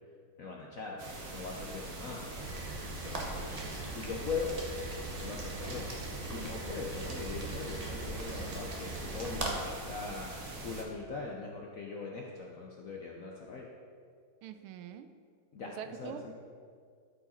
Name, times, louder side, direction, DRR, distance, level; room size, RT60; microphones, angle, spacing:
voice 1, 0.4-1.0 1.3-2.3 3.0-3.6 3.9-4.6 5.2-5.9 6.2-10.3 10.6-13.7 15.5-16.3, left 4 dB, 65° left, -1 dB, 0.8 m, -41 dB
sound 1, 1.0-10.8, right 2 dB, 45° right, 1.3 m, -43 dB
Rain, 2.4-9.5, right 2 dB, 30° right, 0.7 m, -40 dB
voice 2, 14.4-15.1 15.7-16.3, right 8 dB, 85° right, 9 dB, 1.4 m, -44 dB
12.5 x 4.9 x 4.2 m, 2.1 s
omnidirectional pair, 2.3 m